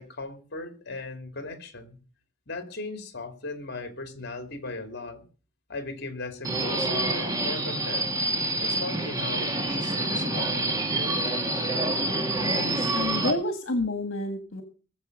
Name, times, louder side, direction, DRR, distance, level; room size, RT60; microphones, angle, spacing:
voice 1, 0.0-2.0 2.5-5.2 5.7-8.2 8.6-11.2, left 2 dB, 60° left, 2.9 m, -37 dB
Subway metro underground, 6.4-13.3, right 2 dB, 20° right, 2.4 m, -27 dB
voice 2, 12.4-14.6, left 2 dB, 80° left, 1.8 m, -29 dB
20.0 x 7.6 x 6.7 m
head